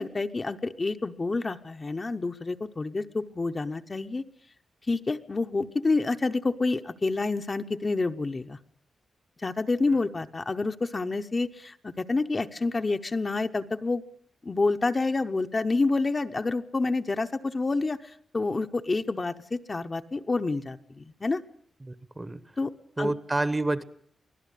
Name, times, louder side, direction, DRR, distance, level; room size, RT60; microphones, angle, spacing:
voice 1, 0.0-4.2 4.9-8.6 9.4-14.0 14.4-21.4 22.6-22.7 23.0-23.1, left 3 dB, 25° left, 6 dB, 0.8 m, -28 dB
voice 2, 21.8-22.4 23.0-23.8, right 2 dB, 20° right, 14 dB, 1.0 m, -28 dB
24.0 x 16.5 x 8.3 m, 0.62 s
wide cardioid pair, 135°, 0 cm